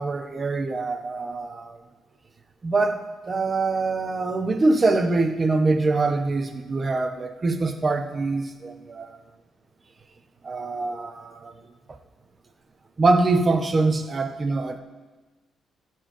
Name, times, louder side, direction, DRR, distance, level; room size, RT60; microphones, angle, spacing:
voice 1, 0.0-1.8 2.6-9.1 10.4-11.5 13.0-14.8, right 3 dB, 30° right, 7 dB, 1.1 m, -24 dB
13.5 x 4.7 x 7.9 m, 1.2 s
cardioid pair, 90°, 0 cm